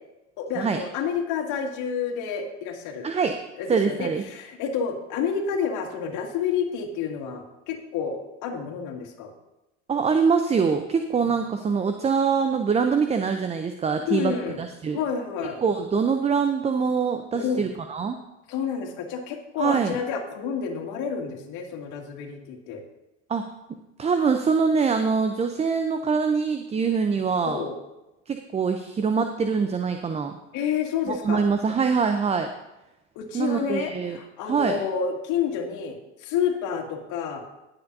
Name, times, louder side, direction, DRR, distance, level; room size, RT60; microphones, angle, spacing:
voice 1, 0.4-3.1 3.6-9.3 11.2-11.3 14.1-14.6 14.9-15.6 17.3-17.6 18.5-22.8 27.4-27.8 30.5-31.4 33.2-37.5, left 7 dB, 55° left, 2 dB, 2.1 m, -29 dB
voice 2, 3.0-3.4 3.7-4.2 9.9-15.0 15.6-18.2 19.6-20.0 23.3-23.5 24.0-27.6 28.3-30.4 31.1-32.5 33.3-34.2 34.5-34.8, right 5 dB, 20° right, 6 dB, 0.6 m, -24 dB
20.0 x 7.1 x 2.7 m, 0.95 s
hypercardioid pair, 90°, 36 cm